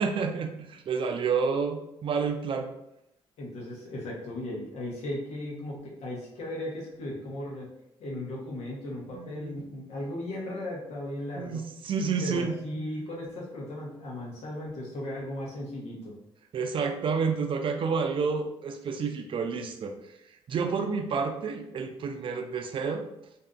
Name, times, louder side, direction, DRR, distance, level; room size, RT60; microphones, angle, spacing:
voice 1, 0.0-2.7 9.1-9.7 11.4-12.6 16.5-19.9 20.5-23.0, right 5 dB, 50° right, 5 dB, 0.4 m, -29 dB
voice 2, 3.4-7.7 8.0-11.6 12.2-16.1, left 1 dB, 70° left, -3 dB, 0.9 m, -36 dB
2.6 x 2.5 x 2.3 m, 0.81 s
supercardioid pair, 70°, 11 cm